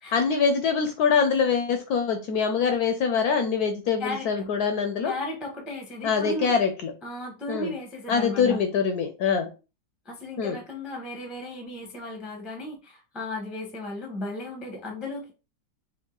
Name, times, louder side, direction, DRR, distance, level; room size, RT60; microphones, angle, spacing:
voice 1, 0.1-5.1 6.0-6.9 7.5-7.7 8.1-9.5 10.4-10.6, left 6 dB, 70° left, 6 dB, 1.0 m, -24 dB
voice 2, 4.0-4.5 5.0-6.5 7.0-8.6 10.0-15.3, left 1 dB, ahead, 2 dB, 0.5 m, -35 dB
4.4 x 2.4 x 3.8 m, 0.30 s
omnidirectional pair, 2.0 m